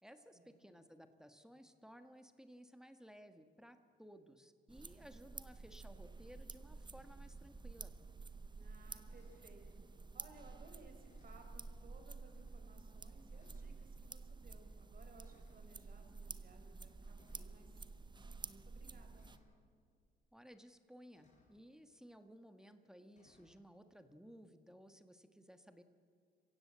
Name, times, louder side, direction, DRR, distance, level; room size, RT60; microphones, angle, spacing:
voice 1, 0.0-7.9 20.3-25.8, equal, 5° right, 8 dB, 1.5 m, -58 dB
sound 1, 4.7-19.4, right 4 dB, 25° right, 0.8 m, -51 dB
sound 2, 6.9-7.0 9.1-9.5 11.1-11.6 12.4-12.5 13.3-13.8 15.2-15.7 17.2-17.7 19.1-19.6 21.1-21.6 23.1-23.6, left 3 dB, 35° left, 4.7 m, -71 dB
voice 2, 8.5-19.3, right 2 dB, 45° right, 4 dB, 4.6 m, -62 dB
26.5 x 16.0 x 7.5 m, 2.2 s
cardioid pair, 90°, 20 cm